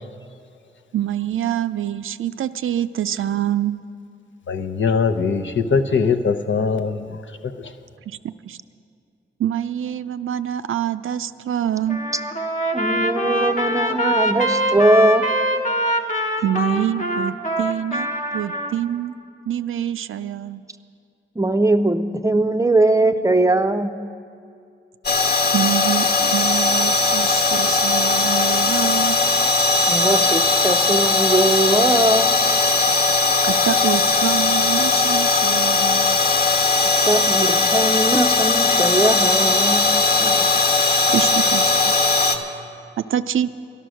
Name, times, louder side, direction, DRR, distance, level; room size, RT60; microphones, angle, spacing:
voice 1, 0.9-3.8 8.1-8.6 9.4-12.0 16.4-19.2 19.5-20.6 25.5-29.2 33.4-36.2 41.1-41.9 43.0-43.5, right 10 dB, 85° right, 12 dB, 0.4 m, -25 dB
voice 2, 4.5-7.0, left 5 dB, 70° left, 7 dB, 0.7 m, -21 dB
Trumpet, 11.9-18.7, equal, 40° left, 1.1 m, -23 dB
voice 3, 12.7-15.3 21.4-23.9 29.9-32.3 37.1-39.9 40.2-40.5, right 2 dB, 15° right, 9 dB, 0.5 m, -20 dB
sound 1, 25.0-42.4, left 3 dB, 55° left, 1.2 m, -18 dB
13.0 x 12.0 x 6.3 m, 2.5 s
wide cardioid pair, 90°, 20 cm